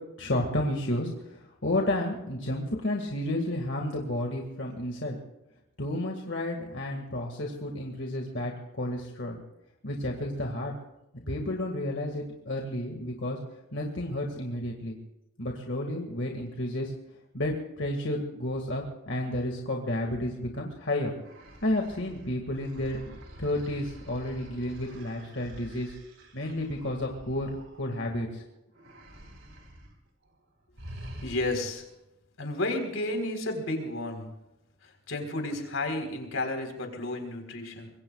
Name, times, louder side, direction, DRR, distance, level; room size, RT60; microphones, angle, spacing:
voice 1, 0.2-5.2 5.8-9.4 9.8-10.7 11.3-13.4 13.7-15.0 15.4-16.9 17.3-21.1 21.6-25.9 26.3-28.4, left 1 dB, 60° left, 1 dB, 2.0 m, -31 dB
sound 1, 21.1-28.3 28.7-30.0 30.2-30.4 30.8-31.9, equal, 80° right, 4.3 m, -47 dB
voice 2, 31.2-31.9 32.4-34.3 34.8-37.9, left 2 dB, 90° left, 4 dB, 4.0 m, -32 dB
25.5 x 22.0 x 2.4 m, 0.89 s
head